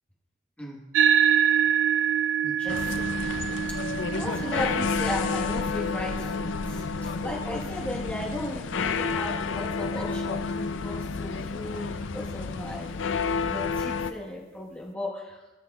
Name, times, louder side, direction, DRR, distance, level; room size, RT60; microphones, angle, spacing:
sound 1, 0.9-9.7, right 8 dB, 80° right, 0.3 m, -27 dB
voice 1, 2.4-3.6 4.1-15.4, left 1 dB, 5° left, -4 dB, 1.3 m, -36 dB
sound 2, 2.7-14.1, left 5 dB, 80° left, 0.4 m, -30 dB
18.0 x 6.1 x 2.3 m, 1.1 s
head